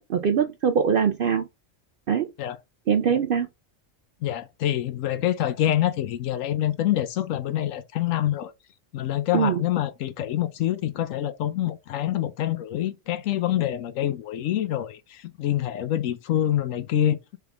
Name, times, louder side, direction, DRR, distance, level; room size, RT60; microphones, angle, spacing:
voice 1, 0.0-1.4 2.1-2.3 2.9-3.5 9.3-9.6, right 7 dB, 65° right, 0.5 m, -22 dB
voice 2, 4.2-8.5 8.9-17.2, left 12 dB, 75° left, 1.0 m, -26 dB
3.6 x 3.5 x 3.4 m
omnidirectional pair, 1.4 m